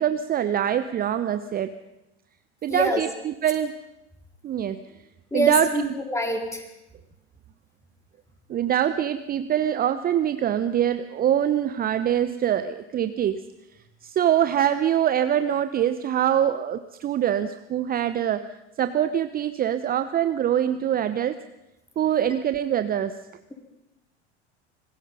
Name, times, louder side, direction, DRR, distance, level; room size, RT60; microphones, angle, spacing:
voice 1, 0.0-1.7 2.6-3.7 4.4-4.8 5.3-5.9 8.5-13.4 14.0-18.4 18.8-21.4 22.0-23.2, right 10 dB, 25° right, 11 dB, 0.9 m, -24 dB
voice 2, 2.7-3.0 5.3-6.6, equal, 10° left, 2 dB, 4.5 m, -25 dB
26.0 x 20.0 x 5.6 m, 0.92 s
figure-of-eight pair, 80°, 34 cm